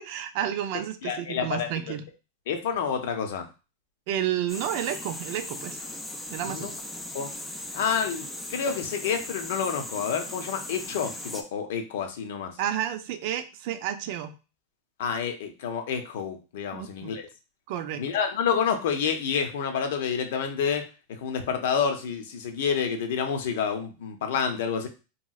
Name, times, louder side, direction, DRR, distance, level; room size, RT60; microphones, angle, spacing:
voice 1, 0.0-2.0 4.1-5.8 6.3-6.7 12.6-14.3 16.7-17.2 17.7-18.0, right 11 dB, 55° right, 10 dB, 0.4 m, -31 dB
voice 2, 1.0-1.9 2.5-3.5 6.4-6.7 7.1-7.3 7.7-12.6 15.0-17.3 18.0-24.9, left 7 dB, 70° left, 6 dB, 0.6 m, -29 dB
sound 1, 4.5-11.4, left 1 dB, 5° left, 0.4 m, -38 dB
3.0 x 2.9 x 2.3 m, 0.32 s
supercardioid pair, 135°, 0 cm